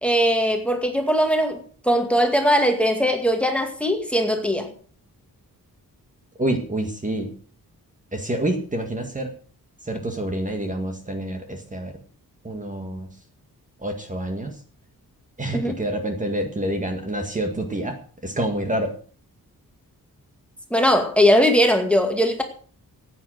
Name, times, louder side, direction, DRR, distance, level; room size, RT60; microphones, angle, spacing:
voice 1, 0.0-4.7 15.5-15.8 20.7-22.4, equal, 5° left, 4 dB, 2.1 m, -20 dB
voice 2, 6.4-7.4 8.1-9.3 9.8-12.0 12.4-13.1 13.8-14.6 15.4-18.9, right 1 dB, 20° right, 4 dB, 1.8 m, -27 dB
15.0 x 9.2 x 6.3 m, 0.43 s
wide cardioid pair, 170°, 35 cm